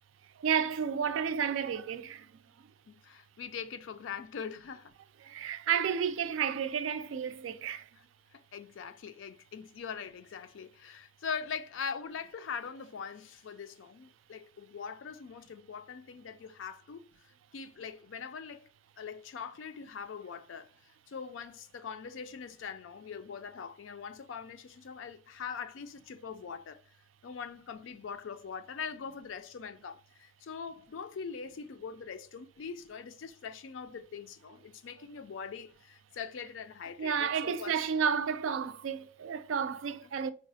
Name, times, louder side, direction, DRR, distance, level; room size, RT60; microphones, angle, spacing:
voice 1, 0.4-2.7 5.2-7.9 37.0-40.3, right 7 dB, 85° right, 0.3 m, -32 dB
voice 2, 2.9-4.9 8.3-17.1 17.5-18.7 19.0-20.7 21.1-26.8 27.2-37.8, left 6 dB, 75° left, 0.4 m, -42 dB
4.7 x 2.0 x 2.6 m
head